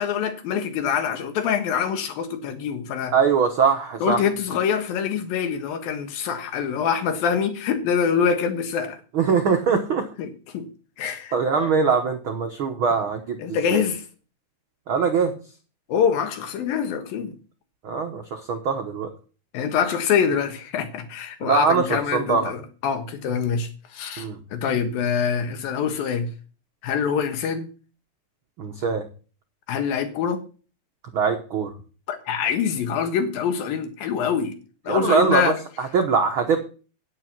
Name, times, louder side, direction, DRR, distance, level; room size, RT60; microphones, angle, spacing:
voice 1, 0.0-3.1 4.0-9.0 10.2-10.3 10.5-10.7 11.0-11.7 13.4-14.0 15.9-17.3 19.5-26.3 26.8-27.7 29.7-30.4 32.1-34.5 34.8-35.6, left 7 dB, 80° left, 3.3 m, -25 dB
voice 2, 3.1-4.2 9.1-10.1 11.3-13.8 14.9-15.3 17.8-19.1 21.4-22.5 24.2-24.4 28.6-29.1 31.1-31.7 34.9-36.6, right 5 dB, 80° right, 1.1 m, -22 dB
9.7 x 8.9 x 6.0 m
omnidirectional pair, 4.1 m